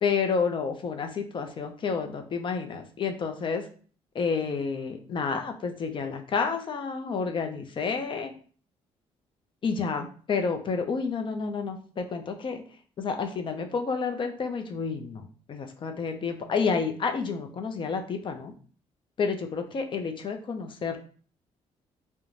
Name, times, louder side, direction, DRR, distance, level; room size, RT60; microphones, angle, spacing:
voice 1, 0.0-3.6 4.1-8.3 9.6-12.6 13.0-18.5 19.2-21.0, left 5 dB, 45° left, 6 dB, 0.5 m, -30 dB
2.4 x 2.1 x 3.1 m, 0.43 s
cardioid pair, 80°, 12 cm